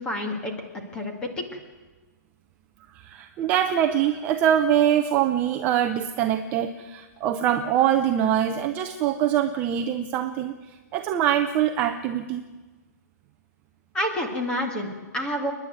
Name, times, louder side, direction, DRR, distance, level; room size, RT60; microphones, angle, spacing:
voice 1, 0.0-1.5 13.9-15.5, left 1 dB, 10° left, 2 dB, 2.2 m, -29 dB
voice 2, 2.9-10.5 10.9-12.4, right 10 dB, 15° right, 6 dB, 0.6 m, -23 dB
29.5 x 10.5 x 9.4 m, 1.3 s
hypercardioid pair, 170°, 10 cm